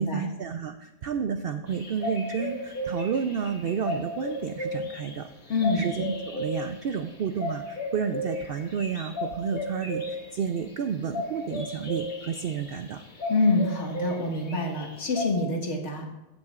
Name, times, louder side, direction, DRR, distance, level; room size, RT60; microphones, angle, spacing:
voice 1, 0.0-5.3 5.7-13.0, right 7 dB, 70° right, 8 dB, 0.5 m, -31 dB
sound 1, 1.7-15.3, left 1 dB, 80° left, 2.2 m, -35 dB
voice 2, 5.5-5.9 13.3-16.1, left 3 dB, 55° left, 1 dB, 1.7 m, -26 dB
15.0 x 7.5 x 2.4 m, 1.0 s
omnidirectional pair, 1.4 m